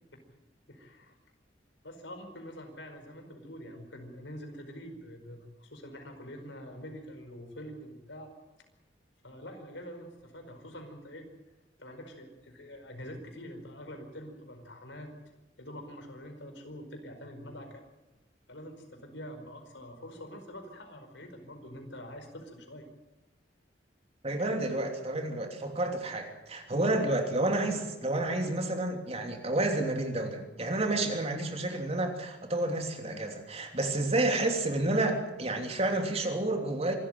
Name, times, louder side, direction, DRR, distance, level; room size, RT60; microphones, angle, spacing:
voice 1, 0.7-1.2 1.8-8.3 9.2-11.3 11.8-15.1 15.6-17.8 18.5-22.9, equal, 85° left, 6 dB, 5.0 m, -45 dB
voice 2, 24.2-37.0, right 2 dB, 35° right, 4 dB, 3.1 m, -30 dB
25.5 x 13.0 x 9.2 m, 1.0 s
head